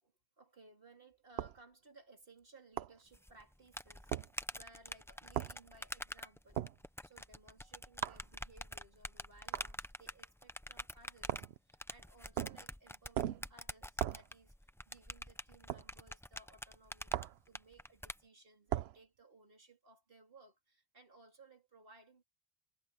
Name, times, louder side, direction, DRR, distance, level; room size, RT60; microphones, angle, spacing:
voice 1, 0.0-4.1 4.5-6.7 7.0-22.2, right 3 dB, 55° right, 3.5 m, -62 dB
sound 1, 1.4-1.6 2.8-3.0 4.1-4.3 5.3-5.6 6.6-6.8 8.0-8.2 9.5-9.7 11.3-11.6 12.4-12.7 13.1-13.5 14.0-14.3 15.7-15.9 17.1-17.4 18.7-19.0, right 12 dB, 70° right, 0.8 m, -37 dB
sound 2, 3.1-18.2, equal, 5° left, 0.4 m, -47 dB
omnidirectional pair, 1.1 m